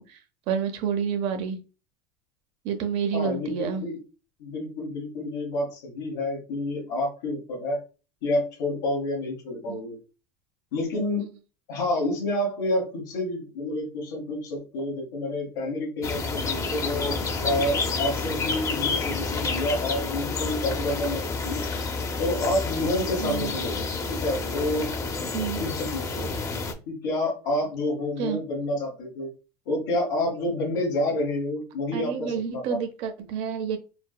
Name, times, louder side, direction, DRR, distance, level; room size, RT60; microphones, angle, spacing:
voice 1, 0.0-1.6 2.6-3.8 9.7-9.8 11.2-11.3 23.2-23.5 25.3-25.7 28.2-28.4 31.9-33.8, right 7 dB, 60° right, 7 dB, 0.7 m, -29 dB
voice 2, 3.1-4.0 4.4-7.8 8.2-9.9 10.7-11.2 11.7-21.6 22.2-23.8 24.1-24.9 25.6-26.3 26.9-29.3 29.7-32.6, left 1 dB, 80° left, -4 dB, 1.2 m, -29 dB
sound 1, 16.0-26.7, left 4 dB, 30° left, 0.6 m, -29 dB
4.3 x 2.0 x 2.3 m, 0.32 s
supercardioid pair, 110°, 11 cm